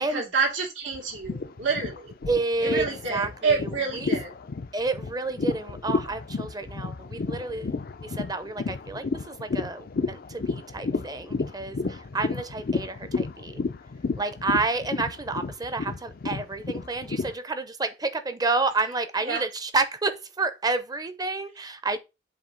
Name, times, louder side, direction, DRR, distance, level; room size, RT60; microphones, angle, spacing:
voice 1, 0.1-2.1 2.6-4.3 19.2-19.4, right 4 dB, 85° right, 2.5 m, -28 dB
sound 1, 0.9-17.3, left 4 dB, 55° left, 0.5 m, -31 dB
voice 2, 2.3-4.1 4.7-7.7 8.0-13.6 14.2-22.0, right 3 dB, 20° right, 0.7 m, -30 dB
7.6 x 2.9 x 5.5 m
head